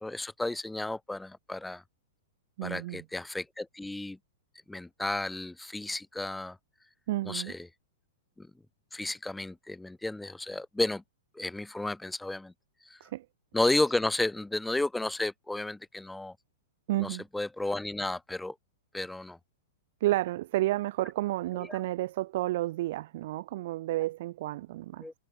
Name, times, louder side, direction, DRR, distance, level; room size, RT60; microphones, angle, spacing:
voice 1, 0.0-1.8 2.6-4.2 4.7-6.6 7.3-7.7 8.4-8.5 8.9-11.0 11.3-12.5 12.9-13.0 13.5-16.4 17.0-18.5 18.9-19.4 21.7-21.8 25.0-25.1, left 2 dB, 5° left, 0.6 m, -32 dB
voice 2, 2.6-3.0 7.1-7.5 13.0-13.3 16.9-17.2 20.0-25.1, right 16 dB, 50° right, 0.9 m, -31 dB
figure-of-eight pair, 100°, 0 cm